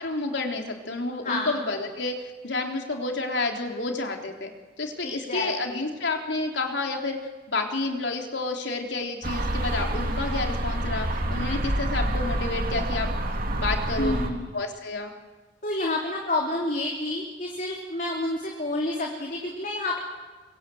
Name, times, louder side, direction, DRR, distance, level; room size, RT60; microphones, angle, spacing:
voice 1, 0.0-2.2 2.4-4.5 4.8-7.2 7.5-13.1 13.6-15.1, left 3 dB, 80° left, 3 dB, 3.5 m, -30 dB
voice 2, 1.2-1.6 5.0-5.8 14.0-14.5 15.6-20.0, left 2 dB, 45° left, -1 dB, 3.3 m, -29 dB
sound 1, 9.2-14.3, right 1 dB, 55° right, 2.5 m, -27 dB
25.0 x 24.0 x 7.8 m, 1.3 s
head